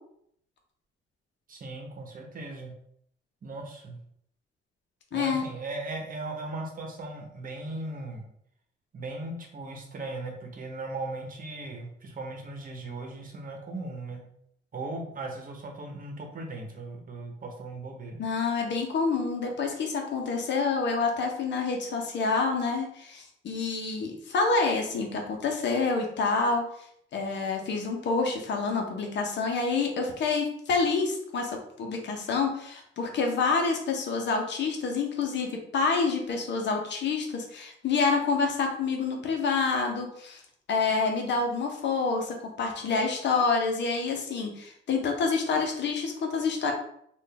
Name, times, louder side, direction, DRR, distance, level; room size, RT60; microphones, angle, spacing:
voice 1, 1.5-2.7 3.4-4.0 5.1-8.3 8.9-14.2 14.7-18.2, right 2 dB, 45° right, 2 dB, 1.0 m, -38 dB
voice 2, 5.1-5.4 18.2-26.6 27.1-40.4 40.7-46.7, left 4 dB, 65° left, 2 dB, 0.9 m, -27 dB
3.9 x 2.5 x 3.4 m, 0.69 s
cardioid pair, 90°, 20 cm